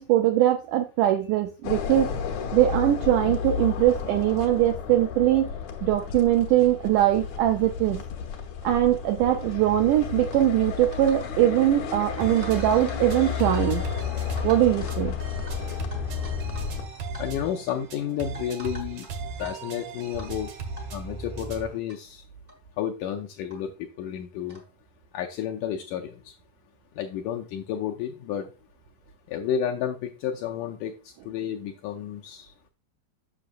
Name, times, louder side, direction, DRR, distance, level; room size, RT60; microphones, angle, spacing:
voice 1, 0.0-2.1 2.5-5.5 5.8-8.0 8.6-13.8 14.4-15.1, right 13 dB, 85° right, 5 dB, 1.8 m, -22 dB
sound 1, 1.6-16.9, left 8 dB, 65° left, 2.0 m, -32 dB
sound 2, 10.3-10.5 10.9-11.3 11.6-11.8 12.4-13.7 14.0-14.1 14.4-15.0 15.5-15.6 15.9-16.7 17.0-17.2 17.7-17.8 18.3-19.1 19.4-19.5 20.2-20.4 20.8-20.9 21.6-21.7 21.9-22.0 22.5-22.6 23.5-23.6 24.5-24.7, equal, 45° right, 0.7 m, -45 dB
sound 3, 12.2-21.8, right 4 dB, 65° right, 1.8 m, -37 dB
voice 2, 17.2-19.1 19.4-20.5 20.9-22.2 22.8-24.6 25.1-26.3 27.0-28.5 29.3-31.0 31.3-32.5, left 9 dB, 80° left, 2 dB, 1.9 m, -31 dB
7.6 x 6.3 x 2.5 m, 0.31 s
omnidirectional pair, 4.2 m